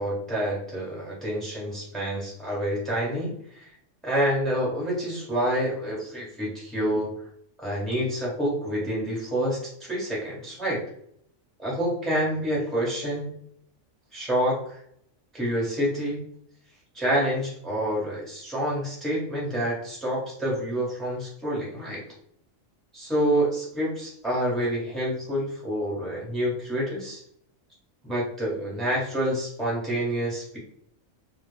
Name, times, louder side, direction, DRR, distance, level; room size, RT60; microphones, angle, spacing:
voice 1, 0.0-3.7 4.0-7.1 7.6-10.8 11.6-13.3 14.1-14.8 15.3-16.2 16.9-22.0 22.9-27.2 28.0-30.6, equal, ahead, -5 dB, 0.7 m, -28 dB
2.2 x 2.1 x 3.1 m, 0.68 s
omnidirectional pair, 1.3 m